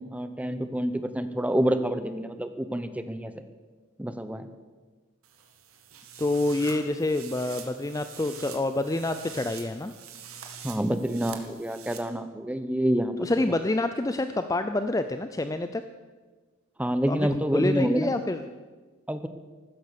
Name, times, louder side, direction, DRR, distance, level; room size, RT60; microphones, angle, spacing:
voice 1, 0.1-3.3 4.0-4.5 10.6-13.2 16.8-18.1 19.1-19.3, equal, 5° right, 10 dB, 0.8 m, -27 dB
sound 1, 5.2-12.0, right 7 dB, 85° right, 2.0 m, -45 dB
voice 2, 6.2-9.9 13.2-15.8 17.1-18.4, left 2 dB, 15° left, 9 dB, 0.4 m, -27 dB
15.0 x 13.0 x 6.8 m, 1.4 s
head